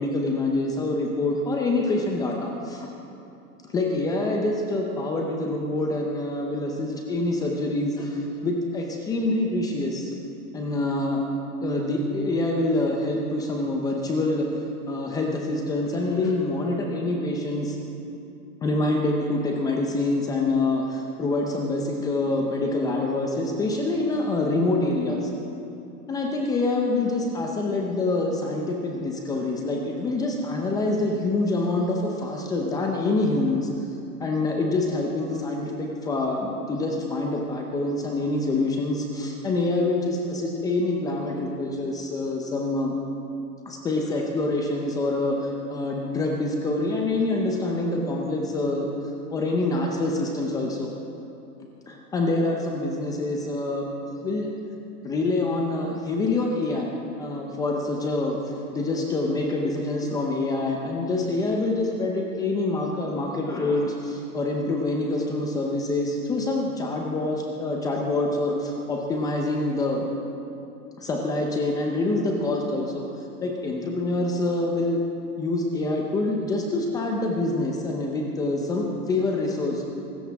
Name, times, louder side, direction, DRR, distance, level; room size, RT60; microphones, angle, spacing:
voice 1, 0.0-2.9 3.7-10.1 10.5-11.2 11.6-14.5 14.9-17.8 18.6-25.3 26.1-33.7 34.2-42.9 43.7-48.9 49.3-50.9 51.9-53.9 54.2-54.5 55.0-70.1 71.0-73.1 73.4-75.0 75.4-79.8, left 2 dB, 10° left, 0 dB, 0.6 m, -26 dB
23.5 x 13.5 x 3.5 m, 2.7 s
hypercardioid pair, 145°, 45 cm